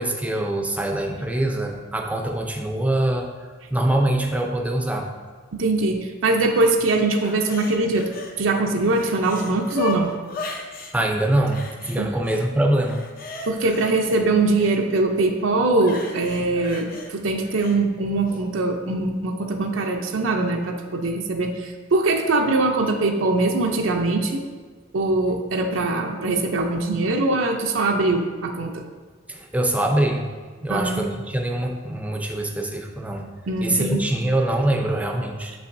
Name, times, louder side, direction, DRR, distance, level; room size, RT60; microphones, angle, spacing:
voice 1, 0.0-3.3 3.7-5.1 10.9-13.0 29.3-30.3 30.6-33.2 33.6-35.5, right 1 dB, 5° right, 2 dB, 0.5 m, -23 dB
voice 2, 5.5-8.1 8.4-10.1 12.0-12.1 13.5-24.4 24.9-28.8 30.7-31.0 33.5-34.0, right 2 dB, 80° right, 3 dB, 0.6 m, -22 dB
sound 1, 7.2-8.3 8.7-10.9 11.5-12.4 12.7-14.8 15.8-17.8 18.3-18.4, left 3 dB, 50° left, 0.7 m, -35 dB
7.3 x 5.6 x 2.6 m, 1.5 s
head